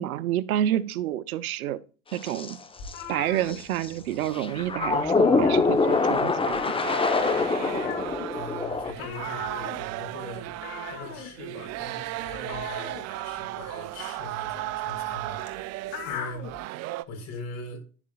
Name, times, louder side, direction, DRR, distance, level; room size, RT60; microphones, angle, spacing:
voice 1, 0.0-1.8 2.1-2.6 3.1-6.7, right 12 dB, 85° right, 0.8 m, -29 dB
sound 1, 2.1-2.5 2.9-3.0 3.5-3.9 4.2-8.9, left 4 dB, 15° left, 1.0 m, -24 dB
sound 2, 2.8-4.3 4.5-4.8 5.1-6.2 6.5-16.6, left 7 dB, 55° left, 2.6 m, -40 dB
sound 3, 4.2-6.1 6.4-17.0, right 16 dB, 40° right, 0.5 m, -36 dB
voice 2, 8.3-10.5 10.9-15.4 16.0-16.4 17.1-17.8, left 2 dB, 40° left, 4.5 m, -41 dB
11.0 x 7.2 x 2.4 m
supercardioid pair, 110°, 42 cm